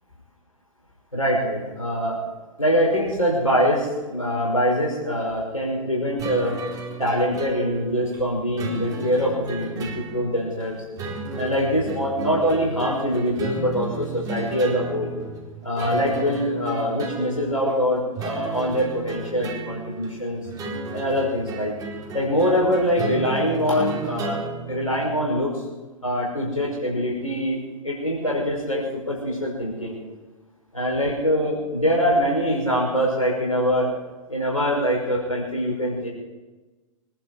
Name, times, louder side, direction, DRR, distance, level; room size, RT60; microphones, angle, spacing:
voice 1, 1.1-2.2 2.6-6.6 7.0-10.8 11.4-15.1 15.6-20.4 20.9-21.7 22.1-24.4 24.7-25.6 26.0-27.6 27.8-30.0 30.7-33.9 34.3-36.1, equal, 85° left, -3 dB, 5.5 m, -23 dB
sound 1, 6.2-25.4, right 3 dB, 20° right, 4.0 m, -34 dB
24.5 x 11.5 x 5.0 m, 1.2 s
figure-of-eight pair, 105°, 17 cm